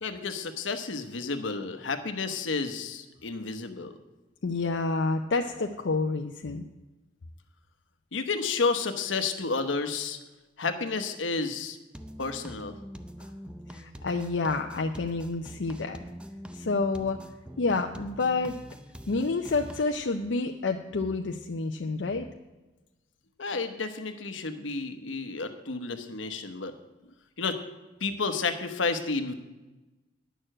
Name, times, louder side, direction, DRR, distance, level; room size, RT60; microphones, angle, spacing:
voice 1, 0.0-4.0 8.1-10.2 10.6-11.8 12.2-12.8 23.4-26.7 27.4-27.6 28.0-29.3, left 4 dB, 85° left, 8 dB, 1.0 m, -31 dB
voice 2, 4.4-6.6 13.7-16.0 16.5-17.2 17.6-18.6 19.1-22.3, left 3 dB, 70° left, 4 dB, 0.6 m, -29 dB
sound 1, 11.9-19.9, equal, 5° right, 0.5 m, -44 dB
10.0 x 6.6 x 7.6 m, 1.1 s
head